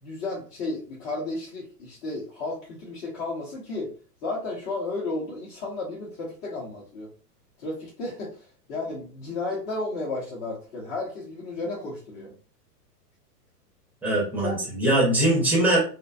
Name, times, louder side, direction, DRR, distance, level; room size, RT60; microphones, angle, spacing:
voice 1, 0.0-3.9 4.2-7.1 7.6-12.3 14.4-14.6, left 2 dB, 40° left, -5 dB, 0.8 m, -33 dB
voice 2, 14.0-15.8, right 1 dB, 5° right, -4 dB, 0.5 m, -22 dB
2.6 x 2.2 x 2.2 m, 0.39 s
hypercardioid pair, 110°, 49 cm